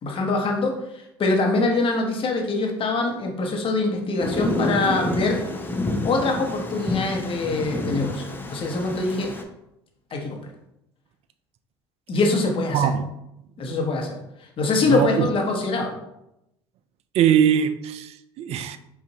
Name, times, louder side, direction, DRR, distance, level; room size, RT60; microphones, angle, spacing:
voice 1, 0.0-0.8 1.2-5.4 6.0-9.3 10.1-10.4 12.1-12.9 13.6-14.2 14.6-15.9, left 3 dB, 40° left, 0.9 m, -24 dB
Thunder, 4.2-9.4, left 1 dB, 15° left, 0.6 m, -28 dB
voice 2, 12.7-13.1 14.9-15.3 17.1-18.8, right 9 dB, 50° right, 0.3 m, -21 dB
5.2 x 2.5 x 2.8 m
hypercardioid pair, 70°, 14 cm